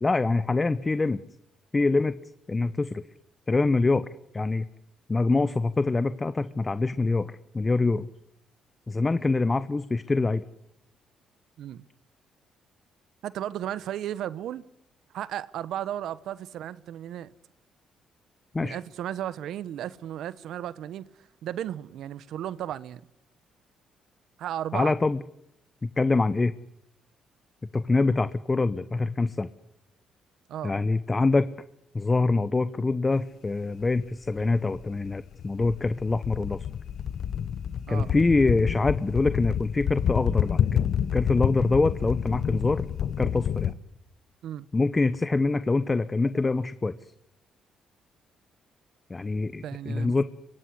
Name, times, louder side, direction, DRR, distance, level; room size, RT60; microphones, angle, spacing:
voice 1, 0.0-1.2 1.7-2.1 2.5-3.0 3.5-4.1 4.3-4.7 5.1-8.1 8.9-10.4 18.5-18.8 24.7-25.2 25.8-26.5 27.7-29.5 30.6-31.5 31.9-36.6 37.9-40.8 41.1-42.9 43.2-43.7 44.7-47.1 49.1-50.2, left 3 dB, 25° left, 1.0 m, -25 dB
voice 2, 13.2-14.6 15.1-17.3 18.6-21.1 21.4-23.0 24.4-25.0 30.5-30.7 37.9-38.1 44.4-44.7 49.6-50.2, right 11 dB, 80° right, 1.1 m, -34 dB
sound 1, 33.8-33.9 34.3-43.7, left 9 dB, 65° left, 1.1 m, -28 dB
23.5 x 23.5 x 9.8 m
cardioid pair, 90°, 0 cm